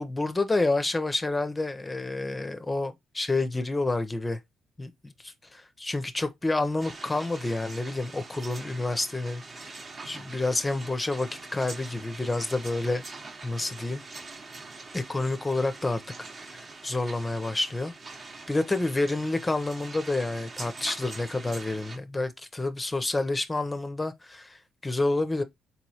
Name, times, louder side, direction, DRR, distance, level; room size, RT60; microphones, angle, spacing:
voice 1, 0.0-4.4 4.8-9.7 10.1-13.0 13.4-14.0 14.9-16.0 16.4-17.9 18.2-25.4, left 2 dB, 20° left, 0.5 m, -29 dB
sound 1, 6.8-22.0, right 3 dB, 40° right, 0.8 m, -44 dB
4.0 x 3.0 x 2.7 m
cardioid pair, 90°, 0 cm